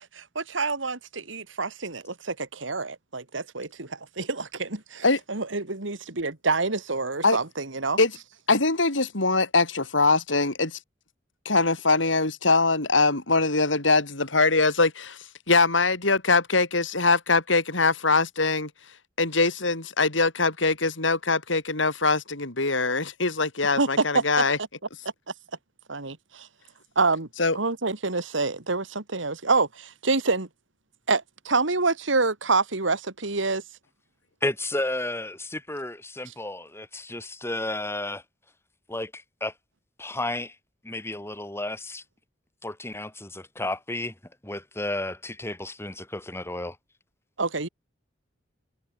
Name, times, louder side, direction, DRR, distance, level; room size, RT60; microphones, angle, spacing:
voice 1, 0.0-3.9 4.2-8.0 23.6-24.2 25.9-26.5 27.0-27.3 27.5-30.5 31.1-33.6 36.3-36.4 47.4-47.7, right 3 dB, 85° right, 2.3 m, -27 dB
voice 2, 8.5-10.8 11.4-15.2 15.5-18.7 19.2-24.6 27.4-27.6, left 3 dB, 85° left, 4.8 m, -22 dB
voice 3, 34.4-38.2 38.9-39.5 40.0-40.5 40.8-42.0 42.6-44.1 44.4-46.8, left 2 dB, 15° left, 3.7 m, -32 dB
head